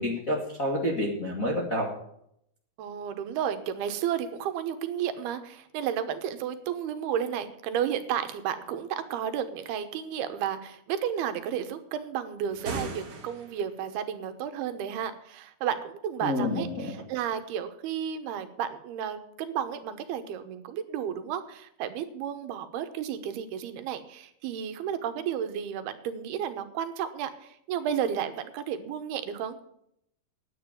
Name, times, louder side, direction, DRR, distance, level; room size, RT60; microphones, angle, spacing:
voice 1, 0.0-1.9 16.2-16.9, left 1 dB, 40° left, -1 dB, 1.1 m, -29 dB
voice 2, 2.8-29.6, right 9 dB, 90° right, 9 dB, 3.1 m, -32 dB
sound 1, 12.5-13.8, right 3 dB, 75° right, 0.8 m, -37 dB
10.0 x 8.9 x 8.9 m, 0.74 s
omnidirectional pair, 4.4 m